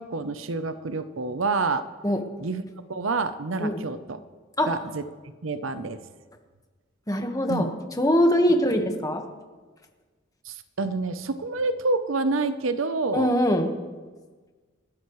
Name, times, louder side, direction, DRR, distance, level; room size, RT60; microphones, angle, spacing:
voice 1, 0.0-1.8 2.4-2.6 2.9-4.2 4.7-5.0 5.4-6.0 7.5-7.7 10.4-13.3, right 3 dB, 75° right, 11 dB, 0.8 m, -28 dB
voice 2, 7.1-7.7 8.0-9.2 13.1-13.7, equal, 20° left, 4 dB, 1.5 m, -22 dB
28.5 x 13.0 x 3.2 m, 1.4 s
head